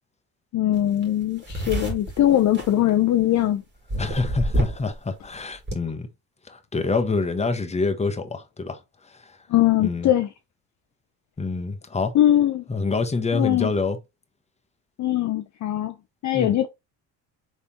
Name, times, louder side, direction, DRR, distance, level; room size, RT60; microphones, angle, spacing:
voice 1, 0.5-3.6 9.5-10.3 12.1-12.6 13.3-13.7 15.0-15.9 16.2-16.7, left 12 dB, 45° left, 0.5 m, -21 dB
sound 1, 0.7-0.8 1.0-3.4 3.9-5.0 5.2-5.7, right 1 dB, 25° right, 1.9 m, -28 dB
voice 2, 4.0-6.1 6.5-8.8 9.1-9.2 9.8-10.1 11.4-12.1 12.7-14.0 16.3-16.5, left 3 dB, 15° left, 0.9 m, -26 dB
4.2 x 3.4 x 2.9 m
supercardioid pair, 80°, 40 cm